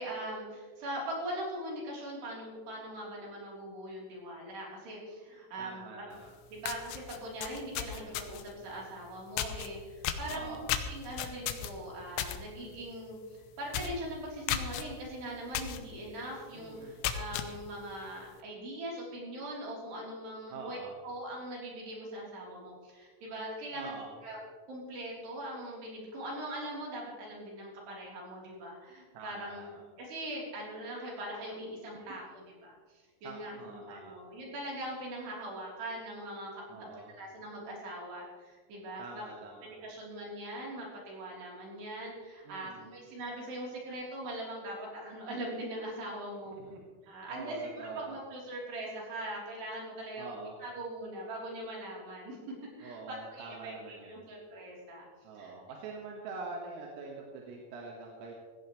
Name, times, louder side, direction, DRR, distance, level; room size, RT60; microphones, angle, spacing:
voice 1, 0.0-6.1 6.5-10.6 10.9-24.4 24.7-39.2 39.6-46.6 47.1-50.4 50.6-52.4 52.8-55.1 55.4-55.5, right 1 dB, 55° right, -3 dB, 5.5 m, -41 dB
voice 2, 5.6-6.3 7.8-8.1 10.3-10.6 16.5-17.0 20.5-21.0 23.7-24.1 29.1-29.8 31.9-32.2 33.2-34.1 36.7-37.1 39.0-39.7 42.4-42.9 46.5-48.2 50.2-50.6 52.8-54.2 55.2-58.3, right 4 dB, 90° right, -1 dB, 4.3 m, -45 dB
sound 1, 6.2-6.3 6.6-8.5 9.4-9.7 10.0-12.4 12.7-13.0 13.3-13.4 13.7-14.0 14.5-14.8 15.5-15.8 16.2-16.3 16.8-17.5, left 10 dB, 80° left, 3.0 m, -34 dB
16.5 x 16.0 x 3.2 m, 1.5 s
omnidirectional pair, 5.9 m